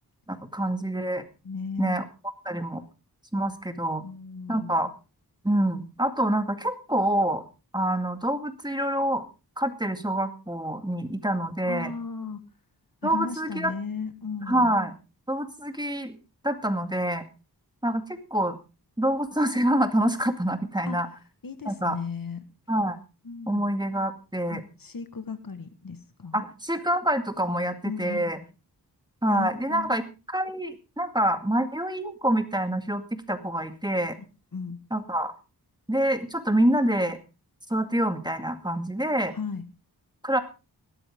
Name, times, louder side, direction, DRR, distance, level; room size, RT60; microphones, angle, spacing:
voice 1, 0.3-1.2 1.8-2.0 2.5-2.8 3.3-4.0 4.5-4.9 5.4-7.4 7.7-9.2 9.6-11.9 13.0-13.7 14.5-14.9 15.3-16.2 16.4-17.2 17.8-18.0 18.3-18.6 19.0-21.1 21.7-22.0 22.7-23.0 23.5-24.6 26.3-28.4 29.2-30.0 30.3-34.2 34.9-35.3 35.9-37.2 37.7-39.3 40.2-40.4, right 1 dB, 10° right, 8 dB, 2.1 m, -26 dB
voice 2, 1.4-2.0 4.0-4.8 11.7-12.4 13.0-14.7 20.8-21.0 21.4-22.4 23.3-23.7 24.5-26.5 27.9-28.3 29.3-30.0 34.5-34.8 39.3-39.6, left 5 dB, 60° left, 10 dB, 1.7 m, -35 dB
17.0 x 13.0 x 3.7 m, 0.30 s
wide cardioid pair, 65°, 39 cm